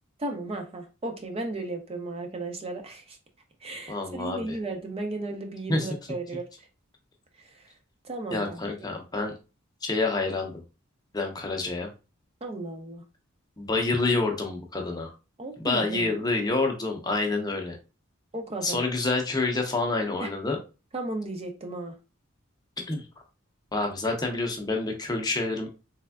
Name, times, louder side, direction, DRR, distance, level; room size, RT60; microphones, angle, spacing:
voice 1, 0.2-3.2 3.6-6.4 7.4-7.6 8.0-8.6 12.4-13.0 15.4-16.2 18.3-18.8 20.2-20.3 20.9-21.9, right 2 dB, 30° right, 0.6 m, -35 dB
voice 2, 3.9-4.6 5.7-5.9 8.3-9.3 9.8-10.5 11.1-11.9 13.6-15.1 15.6-17.8 18.6-20.6 22.9-23.1 23.7-25.7, left 3 dB, 20° left, 0.6 m, -28 dB
3.4 x 3.2 x 2.2 m
head